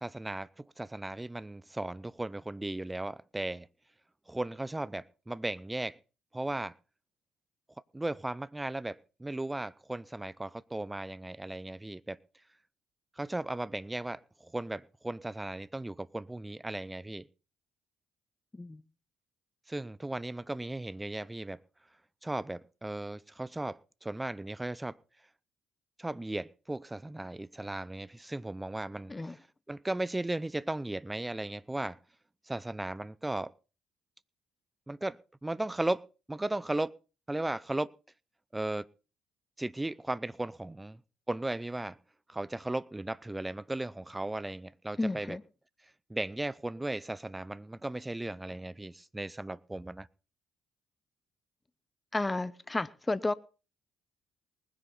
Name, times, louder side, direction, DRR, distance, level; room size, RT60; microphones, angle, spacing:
voice 1, 0.0-3.7 4.3-6.0 6.3-6.7 7.9-12.2 13.2-17.3 19.7-21.6 22.2-25.0 26.0-29.4 29.7-32.0 32.5-33.5 34.9-36.0 36.3-36.9 37.3-37.9 38.5-38.9 39.6-41.0 41.3-42.0 42.3-45.4 46.1-50.1, right 2 dB, 15° right, 0.6 m, -36 dB
voice 2, 45.0-45.4 52.1-53.3, left 2 dB, 20° left, 0.8 m, -32 dB
20.0 x 10.0 x 4.0 m
hypercardioid pair, 50°, 0 cm